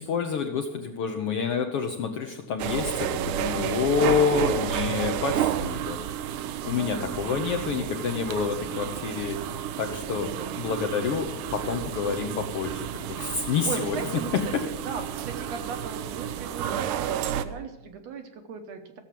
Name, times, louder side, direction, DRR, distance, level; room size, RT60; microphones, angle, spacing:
voice 1, 0.0-6.0 6.6-9.4 9.8-14.0, left 6 dB, 70° left, 2 dB, 1.4 m, -28 dB
sound 1, 2.6-17.4, right 10 dB, 90° right, 2.3 m, -31 dB
voice 2, 3.1-3.8 6.8-7.4 10.1-10.6 13.6-14.6 14.8-19.0, right 5 dB, 65° right, 5 dB, 2.0 m, -38 dB
15.0 x 7.2 x 7.5 m, 0.93 s
omnidirectional pair, 3.6 m